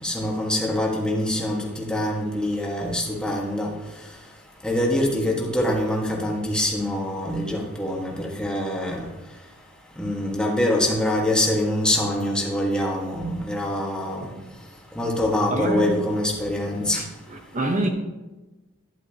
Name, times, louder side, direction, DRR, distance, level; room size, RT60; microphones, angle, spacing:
voice 1, 0.0-3.7 4.6-9.0 10.0-14.2 15.0-17.0, left 1 dB, 5° left, 1.4 m, -24 dB
voice 2, 15.5-16.0 16.9-17.9, right 2 dB, 35° right, 0.9 m, -27 dB
11.5 x 10.5 x 2.8 m
head